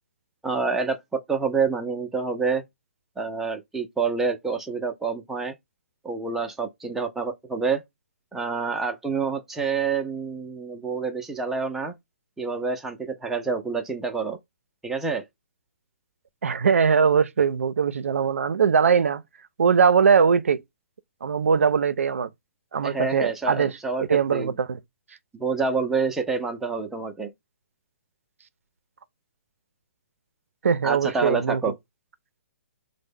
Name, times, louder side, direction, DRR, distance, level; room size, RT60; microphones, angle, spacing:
voice 1, 0.4-2.6 3.2-5.5 6.0-7.8 8.3-11.9 12.4-14.4 14.8-15.2 22.8-24.5 25.3-27.3 30.8-31.7, right 4 dB, 5° right, 0.4 m, -27 dB
voice 2, 16.4-19.2 19.6-20.6 21.2-22.3 22.7-23.7 24.1-24.8 30.6-31.6, right 6 dB, 85° right, 0.4 m, -21 dB
3.2 x 2.0 x 3.4 m
hypercardioid pair, 150°, 7 cm